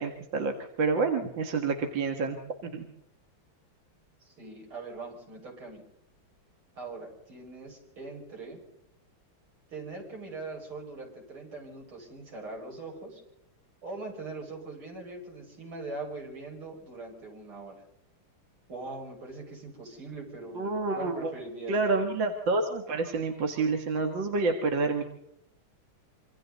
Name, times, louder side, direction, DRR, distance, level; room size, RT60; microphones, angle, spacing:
voice 1, 0.0-2.4 2.6-2.9 20.6-21.3 21.7-25.0, right 3 dB, 65° right, 5 dB, 2.2 m, -28 dB
voice 2, 4.2-5.8 6.8-8.6 9.7-13.2 13.8-17.8 18.7-20.7 20.9-22.0, right 3 dB, 80° right, 1 dB, 6.8 m, -41 dB
26.0 x 25.5 x 4.1 m, 0.78 s
omnidirectional pair, 2.3 m